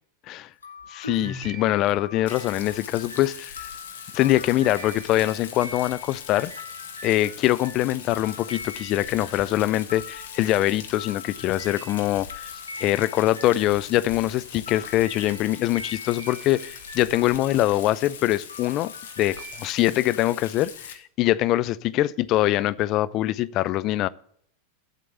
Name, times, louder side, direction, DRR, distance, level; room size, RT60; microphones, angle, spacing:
sound 1, 0.6-14.2 14.7-19.7, left 3 dB, 75° left, 1.8 m, -42 dB
voice 1, 0.9-3.7 4.1-6.5 7.0-12.5 12.8-18.9 19.2-24.1, left 15 dB, 35° left, 0.4 m, -23 dB
Rain, 2.3-20.9, left 7 dB, 60° left, 1.4 m, -41 dB
8.2 x 7.7 x 7.1 m
figure-of-eight pair, 90°, 0 cm